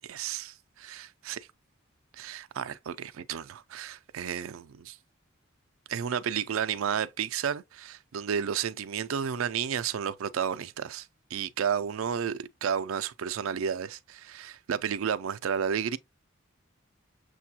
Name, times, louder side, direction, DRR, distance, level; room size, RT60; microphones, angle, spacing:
voice 1, 0.1-1.5 2.1-5.0 5.9-16.0, right 7 dB, 85° right, 0.4 m, -32 dB
6.7 x 2.3 x 2.8 m
head